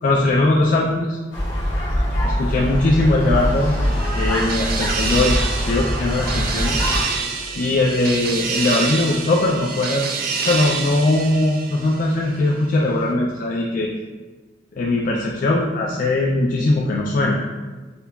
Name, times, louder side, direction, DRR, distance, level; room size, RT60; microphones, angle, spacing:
voice 1, 0.0-1.2 2.2-3.8 4.1-6.7 7.6-13.9 14.7-17.4, left 2 dB, 45° left, -2 dB, 0.3 m, -20 dB
sound 1, 1.3-7.0, equal, 65° left, 0.9 m, -23 dB
sound 2, 3.3-12.4, right 5 dB, 50° right, 0.3 m, -27 dB
5.3 x 2.2 x 2.3 m, 1.3 s
head